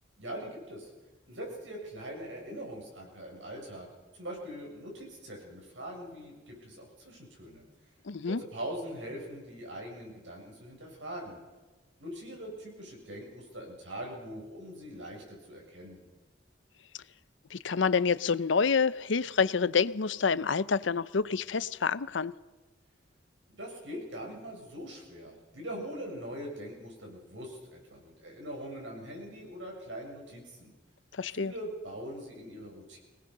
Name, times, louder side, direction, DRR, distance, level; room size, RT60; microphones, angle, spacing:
voice 1, 0.2-0.9 1.3-3.9 4.1-7.6 8.3-11.4 12.0-16.0 23.5-30.7 31.3-33.0, equal, 85° right, 7.7 m, -42 dB
voice 2, 8.1-8.4 17.5-22.3 31.2-31.5, left 5 dB, 85° left, 0.6 m, -28 dB
24.5 x 19.0 x 6.7 m
head